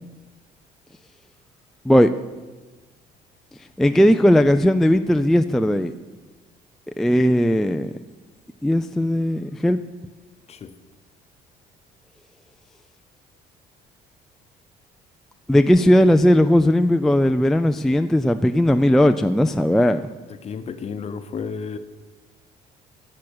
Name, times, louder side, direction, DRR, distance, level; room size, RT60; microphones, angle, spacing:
voice 1, 3.8-5.9 7.0-7.9 8.6-9.8 15.5-20.0, equal, ahead, 8 dB, 0.3 m, -17 dB
voice 2, 20.3-21.8, left 6 dB, 40° left, 10 dB, 0.9 m, -32 dB
10.5 x 6.3 x 8.7 m, 1.3 s
cardioid pair, 110°, 17 cm